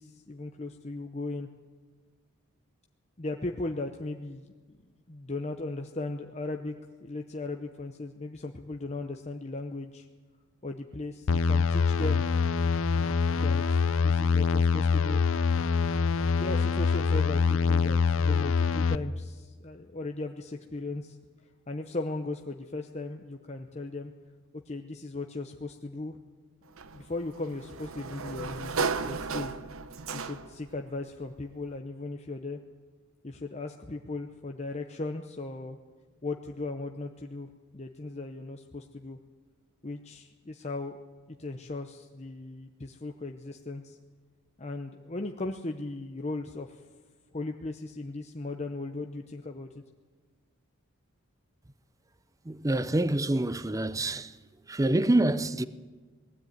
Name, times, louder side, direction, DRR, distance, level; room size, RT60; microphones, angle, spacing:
voice 1, 0.0-1.5 3.2-4.5 5.1-6.7 7.0-10.1 10.6-12.3 13.4-15.2 16.3-21.2 21.7-24.1 24.7-26.2 26.9-29.5 30.1-32.6 33.2-35.8 36.2-39.2 39.8-40.9 41.4-44.0 44.6-46.8 47.3-49.7, left 2 dB, 30° left, 0.8 m, -37 dB
sound 1, 11.3-19.0, left 5 dB, 65° left, 0.6 m, -25 dB
Sliding door, 26.8-30.7, right 5 dB, 70° right, 1.0 m, -34 dB
voice 2, 52.5-54.3 54.7-55.7, right 1 dB, 15° right, 0.6 m, -26 dB
20.0 x 15.5 x 9.3 m
head